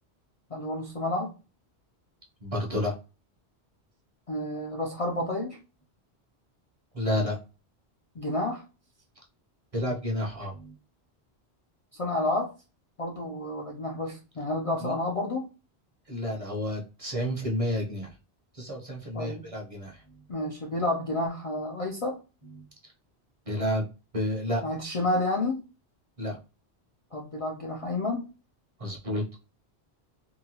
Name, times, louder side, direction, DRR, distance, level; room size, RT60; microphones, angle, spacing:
voice 1, 0.5-1.3 4.3-5.6 8.1-8.6 11.9-12.5 13.0-15.5 19.1-19.5 20.3-22.2 24.6-25.7 27.1-28.3, left 2 dB, 45° left, -1 dB, 0.4 m, -30 dB
voice 2, 2.4-2.9 6.9-7.4 9.7-10.7 14.8-14.9 16.1-18.1 18.5-20.2 22.5-22.6 23.5-23.9 24.1-24.6 26.2-26.4 28.8-29.2, equal, 35° right, -1 dB, 0.8 m, -30 dB
2.8 x 2.2 x 2.8 m, 0.31 s
omnidirectional pair, 1.1 m